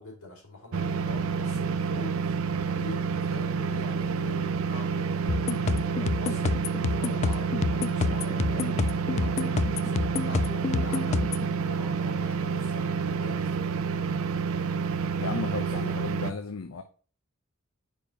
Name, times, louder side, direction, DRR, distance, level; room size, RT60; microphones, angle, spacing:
voice 1, 0.0-11.2 11.6-13.7, left 2 dB, 85° left, 3.4 m, -44 dB
sound 1, 0.7-16.3, right 5 dB, 70° right, 0.5 m, -29 dB
sound 2, 5.3-11.5, left 4 dB, 30° left, 0.3 m, -29 dB
voice 2, 15.2-16.8, left 4 dB, 65° left, 0.6 m, -34 dB
5.2 x 4.5 x 5.3 m
head